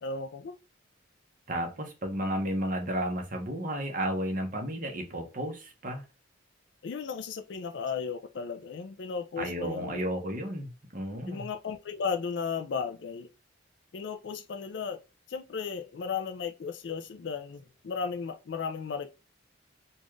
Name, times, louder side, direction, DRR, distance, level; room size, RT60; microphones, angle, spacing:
voice 1, 0.0-0.6 6.8-10.1 11.3-13.3 13.9-15.0 15.3-19.1, left 5 dB, 60° left, 0.4 m, -35 dB
voice 2, 1.5-6.0 9.4-11.5, right 1 dB, 45° right, 1.0 m, -33 dB
4.1 x 2.4 x 3.1 m
head